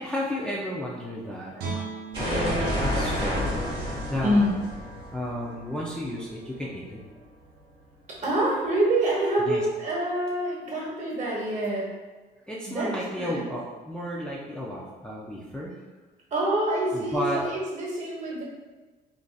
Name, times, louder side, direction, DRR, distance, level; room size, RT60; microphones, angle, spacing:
voice 1, 0.0-1.9 2.2-3.5 4.0-4.5 5.1-7.0 9.5-9.6 12.5-15.7 16.9-17.4, equal, 5° left, -5 dB, 0.4 m, -32 dB
Guitar, 1.6-4.7 5.1-5.3, right 4 dB, 75° right, 0.7 m, -39 dB
sound 1, 2.1-6.9, equal, 30° right, 1.4 m, -30 dB
voice 2, 4.2-4.6 8.1-11.9 12.7-13.5 16.3-18.4, right 1 dB, 45° right, -4 dB, 1.1 m, -26 dB
3.7 x 2.5 x 2.3 m, 1.3 s
cardioid pair, 110°, 17 cm